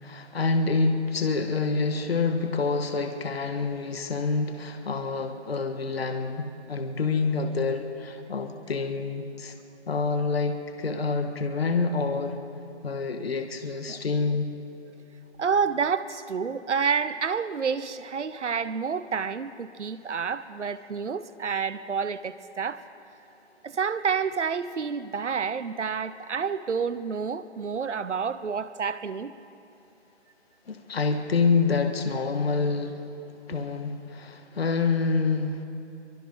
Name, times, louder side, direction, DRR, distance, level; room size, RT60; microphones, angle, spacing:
voice 1, 0.0-9.5 9.9-12.4 12.8-14.5 30.7-33.0 33.5-35.7, left 4 dB, 60° left, 6 dB, 1.7 m, -27 dB
voice 2, 15.4-22.8 23.6-29.3, right 6 dB, 80° right, 13 dB, 1.0 m, -29 dB
27.5 x 24.0 x 3.9 m, 2.9 s
hypercardioid pair, 170°, 35 cm